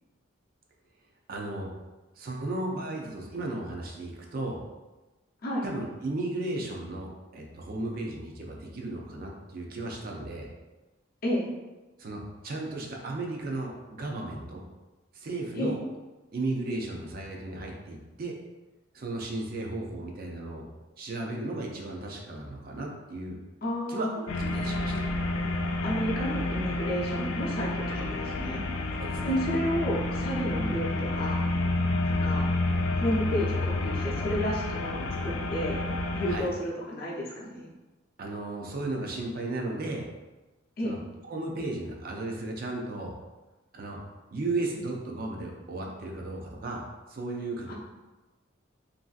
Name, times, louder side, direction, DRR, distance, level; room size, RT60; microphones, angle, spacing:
voice 1, 1.3-1.7 2.2-4.6 5.6-10.5 12.0-14.6 15.1-15.8 16.3-18.4 18.9-20.7 21.0-23.4 23.9-25.0 27.9-28.1 29.0-29.3 30.6-30.8 36.3-36.5 38.2-40.0 40.8-41.0 41.2-43.1 43.7-44.0 44.3-47.7, right 2 dB, 45° right, 0 dB, 0.4 m, -35 dB
voice 2, 23.6-24.2 25.8-28.6 29.2-30.8 31.1-31.4 32.0-32.5 32.9-35.8 36.1-37.7 40.8-40.9 47.7-47.8, equal, 50° left, -4 dB, 0.6 m, -31 dB
sound 1, 24.3-36.4, left 2 dB, 90° left, 0.3 m, -29 dB
3.0 x 2.6 x 2.4 m, 1.2 s
head